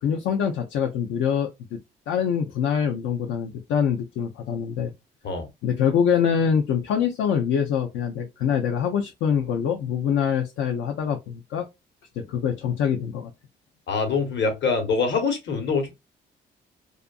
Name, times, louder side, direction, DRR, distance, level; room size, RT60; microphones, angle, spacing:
voice 1, 0.0-1.8 2.1-4.9 5.6-11.7 12.2-13.3, left 7 dB, 80° left, 0.5 m, -24 dB
voice 2, 13.9-15.9, left 4 dB, 65° left, 1.0 m, -24 dB
2.6 x 2.4 x 2.3 m
cardioid pair, 90°, 20 cm